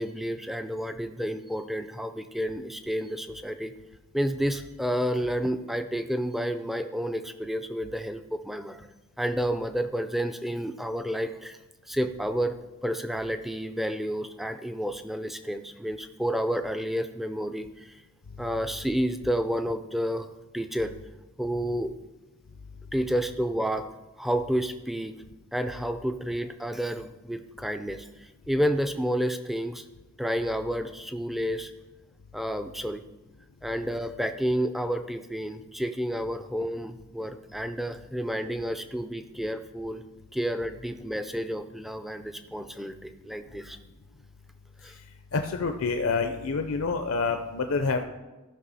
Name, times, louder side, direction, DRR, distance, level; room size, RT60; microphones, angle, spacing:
voice 1, 0.0-3.7 4.1-8.9 9.2-11.6 11.9-12.6 12.8-18.0 18.4-20.3 20.5-20.9 21.4-21.9 22.9-23.9 24.2-25.2 25.5-29.8 30.2-31.7 32.3-33.0 33.6-40.0 40.3-43.8 44.8-44.9, equal, ahead, 9 dB, 0.4 m, -30 dB
voice 2, 45.3-48.0, left 4 dB, 60° left, 6 dB, 0.5 m, -27 dB
14.5 x 5.8 x 4.1 m, 1.1 s
head